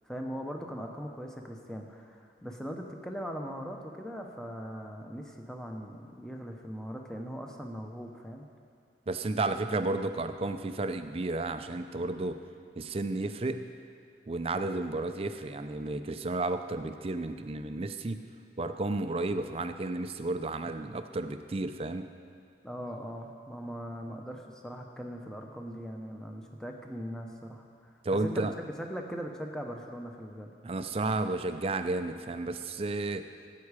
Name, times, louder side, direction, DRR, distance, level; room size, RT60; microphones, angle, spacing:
voice 1, 0.0-8.5 22.6-27.9 28.2-28.5 28.8-30.5, equal, 5° left, 2 dB, 0.8 m, -40 dB
voice 2, 9.1-12.4 12.8-13.7 14.3-18.3 18.6-22.1 28.0-28.5 30.6-33.3, right 2 dB, 35° right, 8 dB, 0.5 m, -32 dB
13.0 x 8.4 x 4.9 m, 2.3 s
head